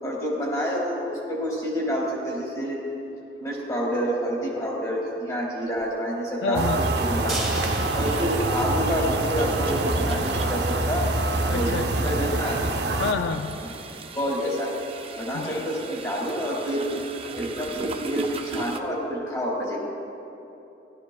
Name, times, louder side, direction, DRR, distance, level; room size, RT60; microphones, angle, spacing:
voice 1, 0.0-2.8 3.4-7.4 7.9-11.1 11.5-12.6 13.6-13.8 14.1-14.7 15.1-16.9 17.3-19.8, equal, 20° left, -4 dB, 2.4 m, -28 dB
sound 1, 5.8-5.9 7.3-18.8, right 3 dB, 30° right, 0.5 m, -39 dB
voice 2, 6.4-6.8 11.5-11.8 13.0-13.6 15.3-15.7, left 4 dB, 80° left, 7 dB, 0.4 m, -28 dB
sound 2, 6.5-13.1, right 2 dB, 65° right, 0.8 m, -25 dB
sound 3, 7.3-9.4 9.8-9.9 10.2-10.3, right 1 dB, ahead, 1.7 m, -35 dB
16.5 x 12.5 x 2.3 m, 2.9 s
head